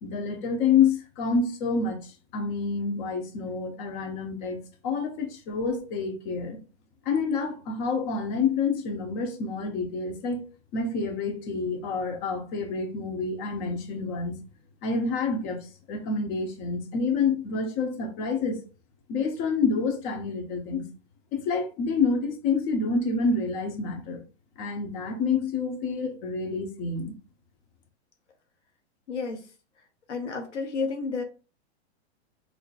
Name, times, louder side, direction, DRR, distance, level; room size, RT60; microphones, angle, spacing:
voice 1, 0.0-6.6 7.0-10.5 10.7-14.4 14.8-18.6 19.1-20.8 21.3-24.2 24.6-27.1, left 4 dB, 45° left, 1.2 m, -28 dB
voice 2, 29.1-29.5 30.1-31.2, left 4 dB, 90° left, 1.0 m, -31 dB
4.0 x 3.2 x 2.4 m
hypercardioid pair, 115°, 34 cm